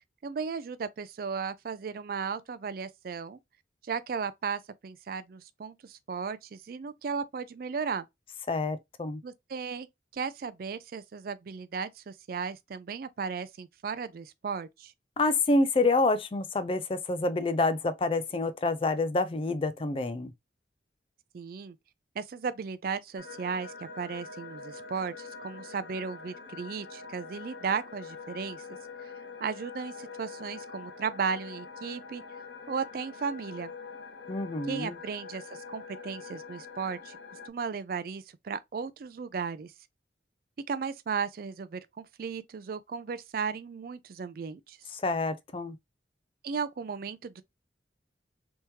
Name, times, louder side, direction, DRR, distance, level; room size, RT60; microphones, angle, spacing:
voice 1, 0.2-3.4 3.9-8.1 9.2-9.9 10.1-14.9 21.3-21.8 22.2-28.6 29.4-32.2 32.7-33.7 34.7-35.4 35.7-37.2 37.5-39.7 40.7-44.8 46.4-47.4, right 5 dB, 55° right, 0.4 m, -35 dB
voice 2, 8.5-9.2 15.2-20.3 34.3-35.0 44.9-45.8, left 2 dB, 30° left, 0.4 m, -27 dB
sound 1, 23.2-37.5, left 5 dB, 70° left, 0.7 m, -45 dB
3.5 x 2.9 x 2.8 m
head